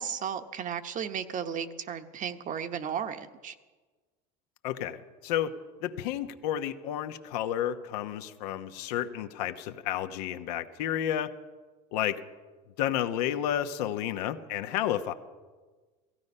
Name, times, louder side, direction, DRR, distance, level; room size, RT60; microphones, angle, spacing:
voice 1, 0.0-3.5, right 8 dB, 40° right, 9 dB, 1.1 m, -34 dB
voice 2, 4.6-5.5 5.8-11.3 11.9-12.2 12.8-15.1, left 11 dB, 75° left, 8 dB, 1.1 m, -31 dB
16.0 x 15.5 x 5.5 m, 1.4 s
supercardioid pair, 100°, 21 cm